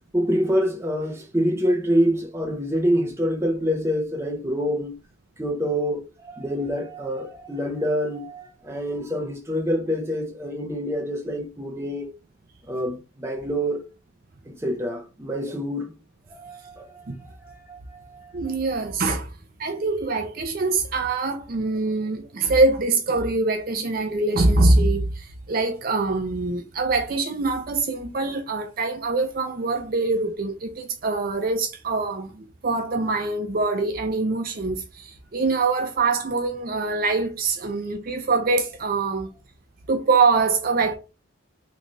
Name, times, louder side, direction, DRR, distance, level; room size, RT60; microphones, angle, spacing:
voice 1, 0.1-4.9 5.4-12.1 12.7-13.8 14.5-15.9 16.3-17.0 17.4-18.3, equal, 15° right, 0.7 m, -26 dB
voice 2, 18.3-19.3 19.6-39.3 39.9-41.0, right 3 dB, 50° right, 0.5 m, -24 dB
3.1 x 2.4 x 3.9 m
head